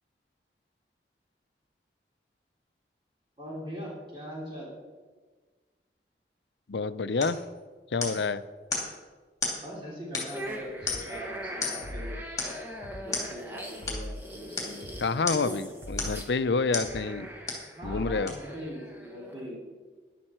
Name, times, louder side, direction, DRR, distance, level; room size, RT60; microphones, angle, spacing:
voice 1, 3.4-4.7 9.6-12.2 13.0-14.9 17.8-19.6, equal, 30° right, -5 dB, 3.1 m, -41 dB
voice 2, 6.7-7.4 7.9-8.4 15.0-17.3 17.8-18.4, left 4 dB, 85° left, 14 dB, 0.5 m, -28 dB
sound 1, 7.2-7.4 8.0-8.3 8.7-8.9 9.4-9.6 10.1-10.5 10.9-11.2 11.6-11.9 12.4-12.6 13.1-13.3 13.9-14.0 14.6-14.8 15.3-15.5 16.0-16.3 16.7-16.9 17.5-17.7 18.3-18.4, left 4 dB, 20° left, 2.8 m, -33 dB
sound 2, 10.3-19.5, equal, 10° right, 1.4 m, -42 dB
sound 3, 10.8-11.1 11.8-12.2 12.8-13.1 13.8-14.2 14.8-15.1 15.8-16.2 16.8-17.1 17.8-18.2, left 1 dB, 75° right, 2.5 m, -39 dB
13.5 x 11.0 x 4.4 m, 1.4 s
head